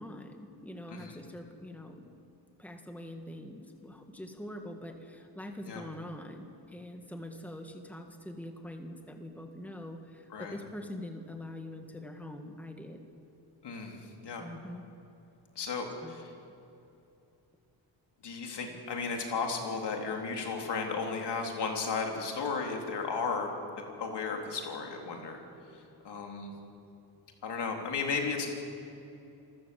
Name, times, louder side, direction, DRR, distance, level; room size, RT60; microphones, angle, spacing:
voice 1, 0.0-2.0 2.6-13.0 14.4-14.8 16.0-16.1, left 1 dB, 5° left, 4 dB, 2.0 m, -44 dB
voice 2, 13.6-14.5 15.6-16.3 18.2-23.5 24.0-25.4 25.7-26.5 27.4-28.5, left 4 dB, 65° left, 2 dB, 3.6 m, -34 dB
27.0 x 14.0 x 7.8 m, 2.7 s
cardioid pair, 85°, 44 cm